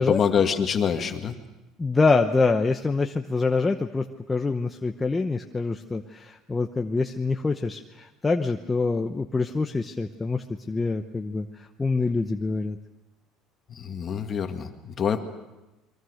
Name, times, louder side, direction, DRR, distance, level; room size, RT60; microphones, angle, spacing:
voice 1, 0.0-1.4 13.7-15.2, left 7 dB, 35° left, 6 dB, 2.0 m, -25 dB
voice 2, 1.8-12.8, left 3 dB, 15° left, 4 dB, 0.9 m, -25 dB
28.5 x 22.5 x 6.5 m, 1.0 s
cardioid pair, 140°, 0 cm